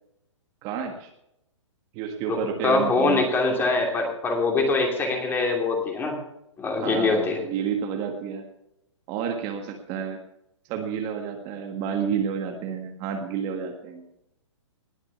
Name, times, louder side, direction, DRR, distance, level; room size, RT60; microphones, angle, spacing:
voice 1, 0.6-1.1 1.9-3.3 6.8-8.5 9.1-10.2 10.7-14.1, right 7 dB, 30° right, 4 dB, 1.6 m, -30 dB
voice 2, 2.6-6.2 6.6-7.4, left 3 dB, 15° left, 2 dB, 2.8 m, -23 dB
19.5 x 6.7 x 7.0 m, 0.82 s
hypercardioid pair, 145°, 16 cm